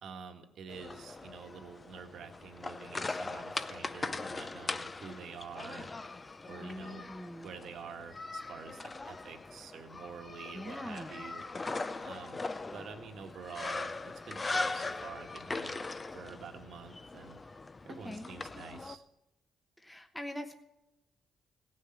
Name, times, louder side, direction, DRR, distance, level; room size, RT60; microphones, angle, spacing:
voice 1, 0.0-5.9 6.5-7.1 7.4-11.4 12.0-12.4 12.7-15.9 16.1-17.4 17.8-19.0, right 6 dB, 70° right, 5 dB, 1.6 m, -48 dB
sound 1, 0.7-19.0, left 3 dB, 25° left, 0.6 m, -40 dB
voice 2, 6.6-7.5 10.5-11.2 18.0-18.3 19.8-20.5, left 1 dB, 5° left, 5 dB, 1.0 m, -43 dB
16.5 x 6.5 x 8.8 m, 0.92 s
cardioid pair, 90°, 0 cm